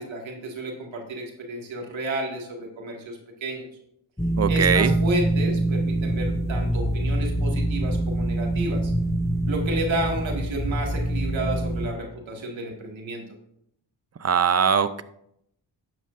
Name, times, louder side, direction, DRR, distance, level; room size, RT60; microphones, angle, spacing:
voice 1, 0.0-3.7 4.5-8.9 9.5-13.2, right 1 dB, 90° right, 0 dB, 2.2 m, -31 dB
sound 1, 4.2-11.9, right 1 dB, 5° left, 0.8 m, -25 dB
voice 2, 4.4-4.9 14.2-15.0, right 7 dB, 35° right, 13 dB, 0.6 m, -21 dB
12.0 x 9.0 x 2.6 m, 0.75 s
cardioid pair, 85°, 45 cm